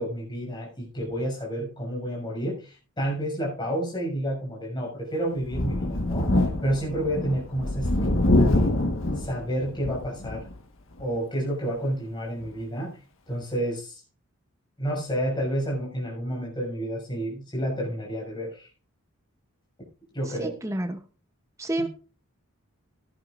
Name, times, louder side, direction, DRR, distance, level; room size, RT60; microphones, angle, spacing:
voice 1, 0.0-6.3 6.6-8.8 9.2-10.5 11.0-12.9 13.3-14.0 14.8-18.7 20.1-20.5, right 1 dB, 20° left, -3 dB, 6.8 m, -30 dB
Thunder, 5.4-10.5 11.0-11.1 12.4-12.5, left 1 dB, 60° left, 1.5 m, -25 dB
voice 2, 20.2-21.0 21.6-21.9, right 1 dB, 15° right, 7 dB, 0.8 m, -29 dB
17.0 x 10.5 x 2.6 m, 0.34 s
head